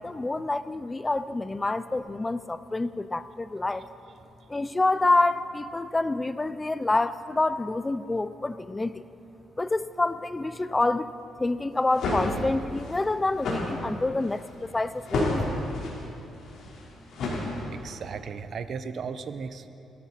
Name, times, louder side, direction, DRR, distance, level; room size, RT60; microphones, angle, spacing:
voice 1, 0.0-3.8 4.5-9.0 9.6-11.1 11.4-15.3, left 2 dB, 20° left, 14 dB, 0.4 m, -27 dB
sound 1, 11.7-18.0, left 2 dB, 70° left, 4.6 m, -31 dB
voice 2, 17.7-19.7, right 6 dB, 55° right, 10 dB, 0.8 m, -36 dB
22.0 x 13.5 x 4.4 m, 2.8 s
cardioid pair, 90°, 0 cm